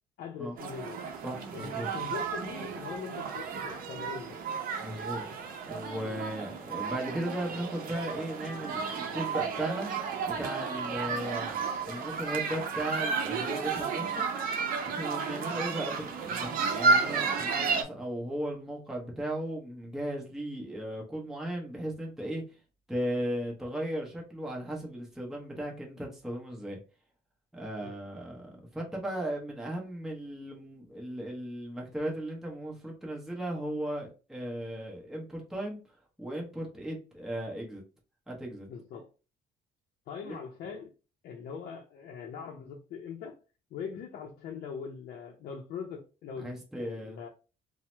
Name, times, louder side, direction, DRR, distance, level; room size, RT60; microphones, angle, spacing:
voice 1, 0.2-1.0 1.5-4.4 6.0-6.2 15.5-15.6 27.8-27.9 38.7-39.1 40.1-40.9 41.2-43.4 43.7-47.3, left 6 dB, 60° left, 0 dB, 0.5 m, -41 dB
sound 1, 0.6-17.8, right 5 dB, 60° right, 0.6 m, -32 dB
voice 2, 1.2-1.9 4.8-5.3 5.7-9.9 10.2-14.2 14.8-22.4 22.9-26.8 27.5-35.8 36.2-37.8 38.3-38.7 40.2-40.4 46.4-47.3, right 1 dB, ahead, -2 dB, 0.8 m, -36 dB
2.7 x 2.0 x 3.2 m, 0.33 s
cardioid pair, 110°, 17 cm